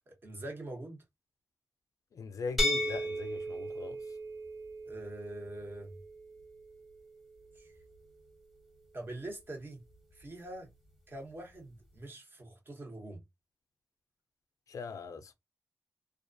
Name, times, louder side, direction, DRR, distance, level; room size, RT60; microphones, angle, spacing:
voice 1, 0.1-1.0 4.9-5.9 7.5-7.7 8.9-9.8 10.1-10.7 11.1-13.2, right 1 dB, 40° right, 1.1 m, -44 dB
voice 2, 2.1-4.0 14.7-15.3, left 5 dB, 75° left, 0.4 m, -41 dB
sound 1, 2.6-8.4, equal, 5° right, 1.1 m, -37 dB
2.4 x 2.2 x 2.5 m
cardioid pair, 75°, 6 cm